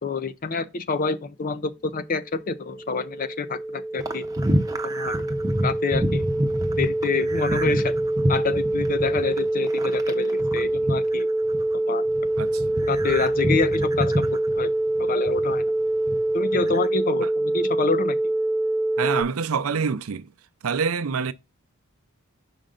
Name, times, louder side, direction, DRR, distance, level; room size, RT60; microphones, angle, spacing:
voice 1, 0.0-4.2 4.8-5.2 5.6-6.3 6.8-7.9 8.3-11.3 11.8-12.0 12.9-14.7 15.0-15.6 16.3-18.2, left 4 dB, 40° left, 0.5 m, -27 dB
sound 1, 2.2-19.2, right 1 dB, 5° left, 1.0 m, -25 dB
sound 2, 4.0-11.7 12.1-15.6 16.0-16.9, equal, 15° right, 0.7 m, -28 dB
voice 2, 12.4-12.9 17.2-17.3 19.0-20.3 20.6-21.3, right 5 dB, 75° right, 0.5 m, -26 dB
5.4 x 5.1 x 3.7 m
head